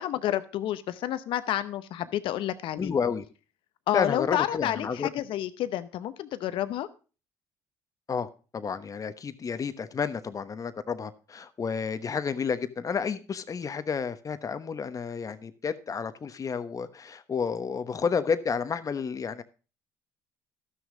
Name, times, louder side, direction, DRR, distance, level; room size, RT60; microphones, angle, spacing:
voice 1, 0.0-2.9 3.9-6.9, left 12 dB, 70° left, 0.7 m, -30 dB
voice 2, 2.8-3.3 3.9-5.1 8.1-19.4, left 6 dB, 40° left, 1.0 m, -31 dB
12.5 x 6.4 x 5.0 m
supercardioid pair, 65°, 9 cm